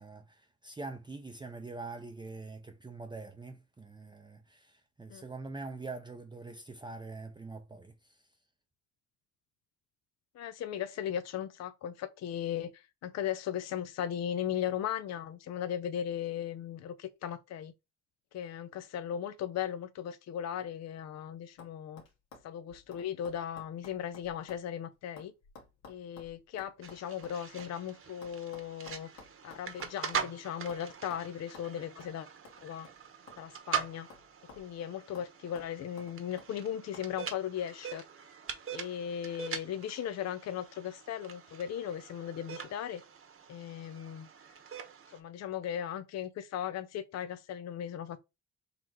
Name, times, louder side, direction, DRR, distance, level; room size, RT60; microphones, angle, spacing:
voice 1, 0.0-8.2, right 3 dB, 15° right, 0.6 m, -44 dB
voice 2, 10.3-17.7 18.3-22.0 22.4-25.3 25.9-29.1 29.4-32.3 32.6-32.9 33.4-34.1 34.5-38.0 38.7-43.0 43.5-44.3 45.1-48.2, left 9 dB, 60° left, 0.5 m, -37 dB
sound 1, 20.8-21.2 21.6-21.7 22.0-24.7 24.9-27.7 28.2-30.3 30.7-30.8 31.1-31.2 31.5-31.7 32.0-32.1 32.4-33.5 33.7-34.8 35.1-35.3 35.6-36.5 36.9-37.1, left 4 dB, 85° left, 1.8 m, -54 dB
sound 2, 26.8-45.2, right 7 dB, 45° right, 1.0 m, -43 dB
4.0 x 2.9 x 4.5 m
cardioid pair, 90°, 30 cm